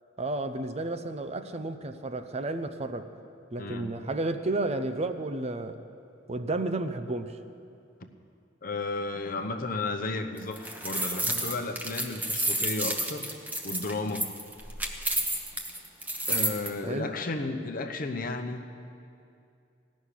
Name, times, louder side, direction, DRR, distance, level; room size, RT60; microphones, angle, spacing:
voice 1, 0.2-3.1 3.5-5.8 6.3-7.4 16.8-17.1, right 2 dB, 35° right, 8 dB, 0.6 m, -32 dB
voice 2, 3.6-4.0 8.0-8.1 8.6-13.3 13.6-14.3 16.3-18.7, left 3 dB, 50° left, 5 dB, 0.9 m, -33 dB
sound 1, 10.4-16.7, right 1 dB, 10° right, 1.0 m, -30 dB
16.0 x 6.3 x 10.0 m, 2.5 s
head